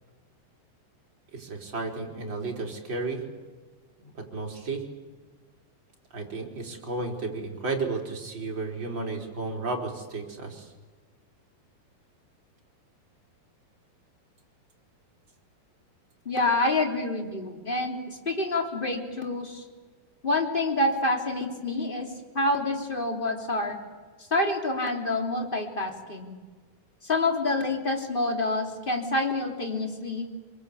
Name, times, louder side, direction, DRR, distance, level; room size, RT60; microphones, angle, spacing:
voice 1, 1.3-3.2 4.0-4.8 6.1-10.7, right 3 dB, 30° right, 0 dB, 4.2 m, -33 dB
voice 2, 16.2-19.6 20.2-22.1 22.3-23.8 24.3-26.3 27.0-30.3, left 2 dB, 15° left, 2 dB, 2.8 m, -27 dB
26.5 x 23.0 x 8.5 m, 1.4 s
omnidirectional pair, 4.8 m